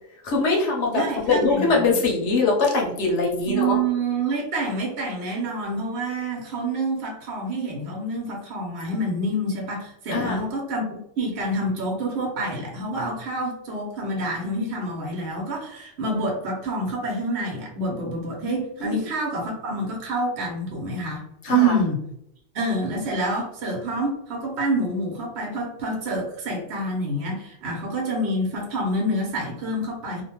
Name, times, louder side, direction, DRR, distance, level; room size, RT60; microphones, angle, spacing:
voice 1, 0.2-3.8 10.1-10.4 18.8-19.0 21.4-21.7, left 3 dB, 70° left, -1 dB, 1.0 m, -22 dB
voice 2, 0.9-2.0 3.4-22.0 22.5-30.2, right 1 dB, 65° right, -1 dB, 0.9 m, -27 dB
2.6 x 2.1 x 2.9 m, 0.74 s
omnidirectional pair, 1.3 m